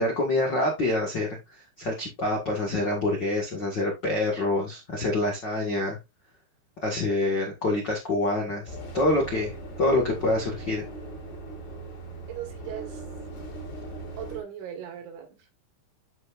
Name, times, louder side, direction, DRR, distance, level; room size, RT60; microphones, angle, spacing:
voice 1, 0.0-6.0 6.8-10.8, left 2 dB, 80° left, 0.9 m, -26 dB
sound 1, 8.7-14.4, right 2 dB, 35° left, 2.6 m, -39 dB
voice 2, 12.3-13.0 14.2-15.5, right 10 dB, 85° right, 4.2 m, -38 dB
11.0 x 5.3 x 2.6 m
omnidirectional pair, 5.2 m